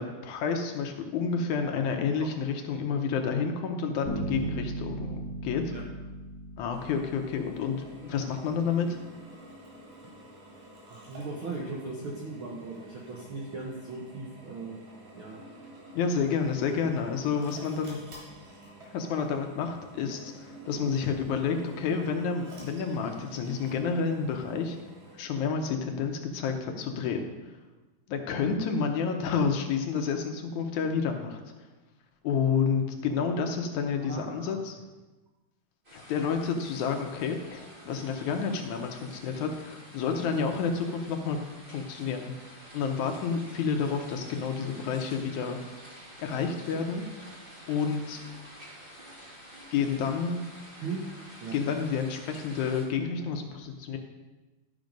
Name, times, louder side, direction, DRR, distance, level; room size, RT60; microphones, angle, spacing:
voice 1, 0.0-5.7 6.6-9.0 16.0-18.0 18.9-24.8 25.1-27.3 28.1-31.4 32.2-34.8 35.9-41.4 41.7-42.3 42.7-45.6 46.2-47.0 47.7-48.2 49.7-50.4 51.5-54.0, left 6 dB, 75° left, 4 dB, 2.1 m, -30 dB
sound 1, 4.0-7.8, right 2 dB, 20° left, 0.4 m, -37 dB
Drill, 6.7-25.2, right 1 dB, 80° right, 4.8 m, -50 dB
voice 2, 10.9-14.8 15.1-15.5 21.0-21.1 34.0-34.6 50.8-51.1 51.4-51.6, right 3 dB, 65° right, -2 dB, 1.3 m, -38 dB
sound 2, 35.8-52.8, equal, 20° right, 1.6 m, -49 dB
12.0 x 6.2 x 5.2 m, 1.2 s
omnidirectional pair, 3.7 m